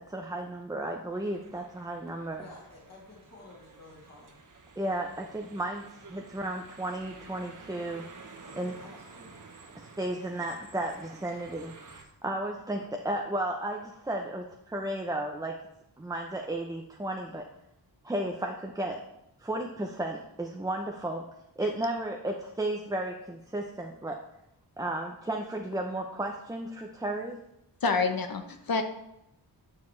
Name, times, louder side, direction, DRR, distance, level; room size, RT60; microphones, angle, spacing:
voice 1, 0.1-2.4 4.8-8.1 8.6-8.7 9.7-11.7 12.2-15.5 16.0-17.4 18.0-19.0 19.4-21.2 21.6-24.2 24.8-27.4, right 1 dB, 10° right, 2 dB, 0.5 m, -33 dB
sound 1, 1.1-12.0, right 4 dB, 45° right, 1.0 m, -51 dB
voice 2, 2.4-4.4 8.4-9.4, left 2 dB, 40° left, -6 dB, 2.6 m, -51 dB
voice 3, 27.8-28.8, left 4 dB, 55° left, 7 dB, 0.9 m, -28 dB
9.5 x 6.5 x 3.2 m, 0.83 s
wide cardioid pair, 140°, 42 cm